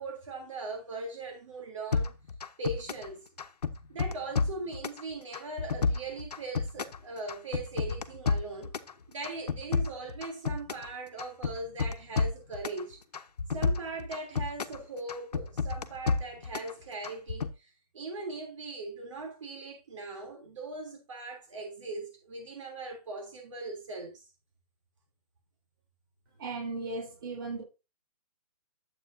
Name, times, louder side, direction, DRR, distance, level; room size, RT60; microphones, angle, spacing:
voice 1, 0.0-2.1 2.6-3.3 3.9-8.7 9.1-13.0 13.5-24.3, right 3 dB, 50° right, 3.0 m, -40 dB
sound 1, 1.9-3.1 3.4-5.0 5.3-7.0 7.3-8.9 9.2-10.9 11.2-12.8 13.1-14.8 15.1-16.7 17.0-17.5, left 4 dB, 90° left, 1.1 m, -30 dB
voice 2, 26.4-27.6, right 3 dB, 35° right, 3.6 m, -36 dB
10.5 x 8.4 x 2.7 m
hypercardioid pair, 170°, 20 cm